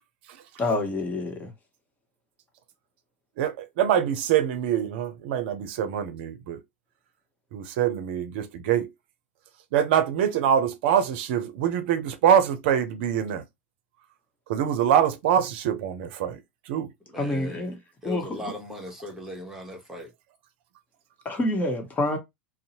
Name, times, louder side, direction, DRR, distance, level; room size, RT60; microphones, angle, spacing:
voice 1, 0.6-1.5 17.2-17.8 18.0-18.4 21.2-22.2, left 2 dB, 25° left, 1.0 m, -27 dB
voice 2, 3.4-6.6 7.5-8.9 9.7-13.4 14.5-16.4 16.7-16.9, right 9 dB, 65° right, 0.5 m, -24 dB
voice 3, 17.1-17.7 18.0-20.1, left 1 dB, 5° right, 1.0 m, -38 dB
2.6 x 2.0 x 2.8 m
hypercardioid pair, 85°, 6 cm